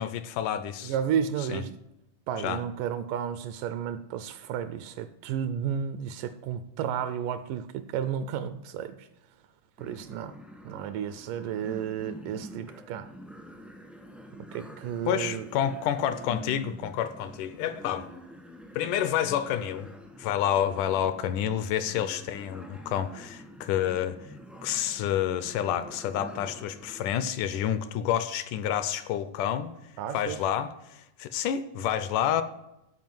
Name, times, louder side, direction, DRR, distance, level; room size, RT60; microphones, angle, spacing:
voice 1, 0.0-0.9 1.5-1.6 2.4-2.6 15.1-18.1 18.7-19.9 20.2-24.2 24.6-29.7 30.1-32.4, left 10 dB, 80° left, 12 dB, 1.9 m, -29 dB
voice 2, 0.8-1.8 2.3-9.1 9.8-10.4 10.6-13.1 14.5-15.5 30.0-30.4, right 8 dB, 80° right, 12 dB, 2.0 m, -32 dB
sound 1, 9.8-27.1, equal, ahead, 0.4 m, -47 dB
13.0 x 4.7 x 7.6 m, 0.88 s
omnidirectional pair, 4.0 m